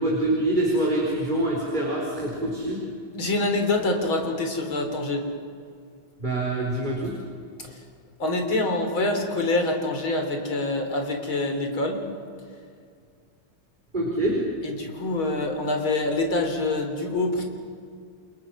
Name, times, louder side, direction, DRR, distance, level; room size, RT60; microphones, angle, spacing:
voice 1, 0.0-2.8 6.2-7.1 13.9-14.4, right 1 dB, 20° right, -3 dB, 4.4 m, -25 dB
voice 2, 3.1-5.2 8.2-12.0 14.6-17.5, left 2 dB, 70° left, 4 dB, 4.4 m, -25 dB
30.0 x 27.0 x 6.2 m, 2.3 s
omnidirectional pair, 2.3 m